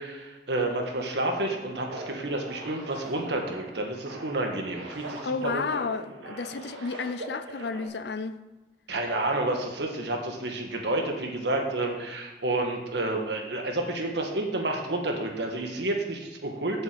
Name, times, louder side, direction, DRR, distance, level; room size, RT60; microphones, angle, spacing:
voice 1, 0.0-5.6 8.9-16.8, right 2 dB, 70° right, 2 dB, 1.6 m, -30 dB
sound 1, 1.4-7.9, right 2 dB, 85° right, 1.7 m, -42 dB
voice 2, 5.2-8.4, left 4 dB, 65° left, 12 dB, 0.5 m, -32 dB
7.9 x 5.6 x 7.6 m, 1.1 s
head